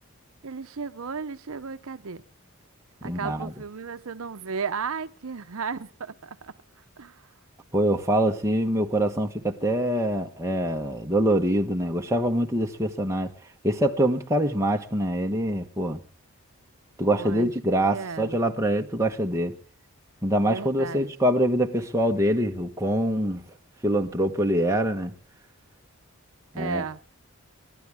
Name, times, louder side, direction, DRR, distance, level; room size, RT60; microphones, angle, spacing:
voice 1, 0.4-2.2 3.0-6.5 7.0-7.3 17.1-18.4 20.4-21.1 26.6-27.0, right 5 dB, 65° right, 0.7 m, -34 dB
voice 2, 3.0-3.5 7.7-13.3 13.6-16.0 17.0-19.5 20.2-23.4 23.8-25.1 26.5-26.8, right 1 dB, 15° right, 1.2 m, -24 dB
29.5 x 12.0 x 3.5 m
head